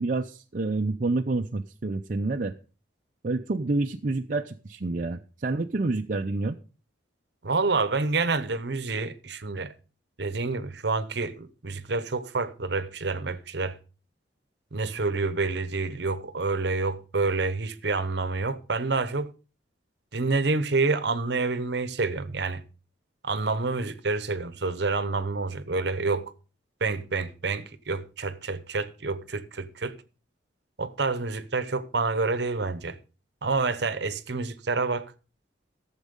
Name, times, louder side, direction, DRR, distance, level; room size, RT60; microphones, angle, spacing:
voice 1, 0.0-2.5 3.2-6.6, right 3 dB, 45° right, 0.5 m, -28 dB
voice 2, 7.4-9.7 10.2-13.8 14.7-19.3 20.1-22.6 23.2-26.3 26.8-30.0 30.8-33.0 33.4-35.1, right 3 dB, 60° right, 0.9 m, -28 dB
13.5 x 7.3 x 5.2 m
head